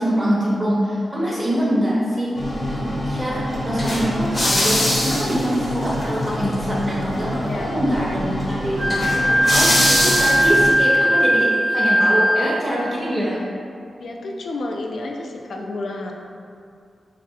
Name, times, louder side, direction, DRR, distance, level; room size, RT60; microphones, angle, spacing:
voice 1, 0.0-2.6 3.0-8.3 8.6-9.7 10.0-13.4, equal, 25° right, -7 dB, 0.5 m, -24 dB
sound 1, 2.4-10.7, left 1 dB, 35° left, 0.6 m, -23 dB
voice 2, 7.5-7.8 9.1-9.5 14.0-16.1, left 2 dB, 70° left, 1 dB, 0.3 m, -31 dB
Wind instrument woodwind instrument, 8.8-12.7, equal, 85° right, 0.3 m, -19 dB
3.2 x 2.3 x 2.6 m, 2.4 s
wide cardioid pair, 100°, 0 cm